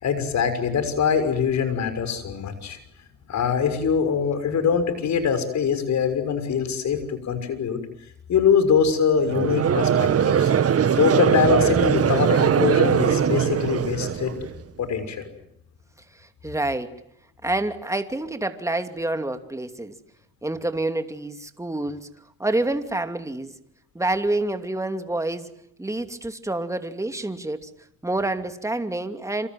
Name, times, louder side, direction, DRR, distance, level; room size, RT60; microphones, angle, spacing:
voice 1, 0.0-2.8 3.3-7.8 8.3-10.5 11.0-14.3 14.8-15.3, left 6 dB, 65° left, 11 dB, 6.1 m, -23 dB
Conversation / Crowd, 9.3-14.6, right 8 dB, 50° right, 1.9 m, -21 dB
voice 2, 16.1-17.0 17.4-19.9 20.4-22.1 22.4-23.5 23.9-25.5 25.8-27.7 28.0-29.5, right 2 dB, 10° right, 8 dB, 2.8 m, -27 dB
27.5 x 26.0 x 7.8 m, 0.72 s
cardioid pair, 90°, 30 cm